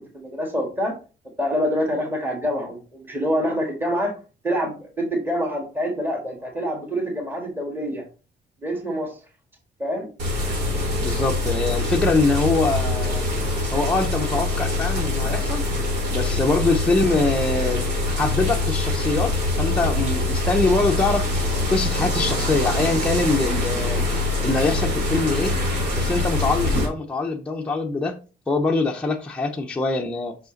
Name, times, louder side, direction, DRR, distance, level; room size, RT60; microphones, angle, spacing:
voice 1, 0.1-0.9 1.4-4.1 4.4-8.0 8.6-9.2 9.8-10.1, equal, 10° right, 1.7 m, -26 dB
sound 1, 10.2-26.9, left 2 dB, 70° right, 3.2 m, -24 dB
voice 2, 11.0-13.3 13.7-15.6 16.1-17.9 18.2-21.3 21.7-24.1 24.4-25.6 25.9-30.4, left 3 dB, 5° left, 0.6 m, -23 dB
5.7 x 5.3 x 3.8 m
cardioid pair, 165°, 18 cm